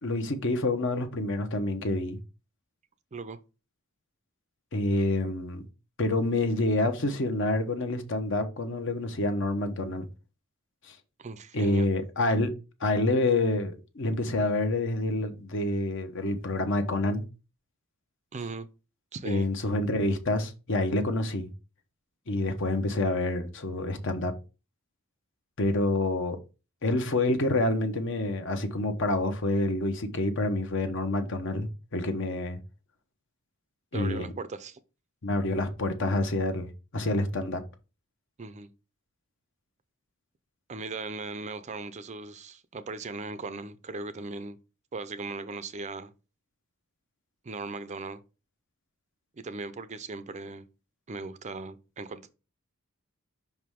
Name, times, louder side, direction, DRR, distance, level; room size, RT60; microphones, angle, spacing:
voice 1, 0.0-2.2 4.7-5.6 6.0-10.1 10.9-11.0 11.5-12.5 12.8-17.3 19.2-21.5 22.3-24.3 25.6-26.4 26.8-32.6 33.9-34.3 35.2-37.6, left 2 dB, 60° left, 0.9 m, -27 dB
voice 2, 11.2-11.9 18.3-18.7 19.1-19.5 33.9-34.8 38.4-38.7 40.7-44.6 44.9-46.1 47.4-48.2 49.4-50.7 51.1-52.3, right 3 dB, 30° right, 0.5 m, -38 dB
5.5 x 4.7 x 3.6 m
head